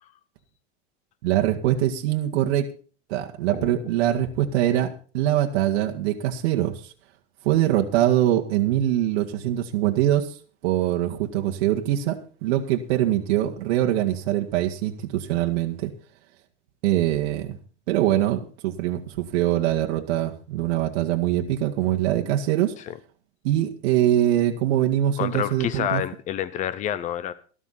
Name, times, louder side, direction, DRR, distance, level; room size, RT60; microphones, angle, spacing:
voice 1, 1.2-2.7 3.1-4.9 5.1-6.7 7.4-10.3 10.6-15.9 16.8-17.6 17.9-22.7 23.4-26.0, right 12 dB, 60° right, 2 dB, 2.0 m, -23 dB
voice 2, 25.2-27.3, left 11 dB, 20° left, 16 dB, 0.7 m, -28 dB
13.0 x 13.0 x 4.2 m, 0.39 s
supercardioid pair, 160°, 35 cm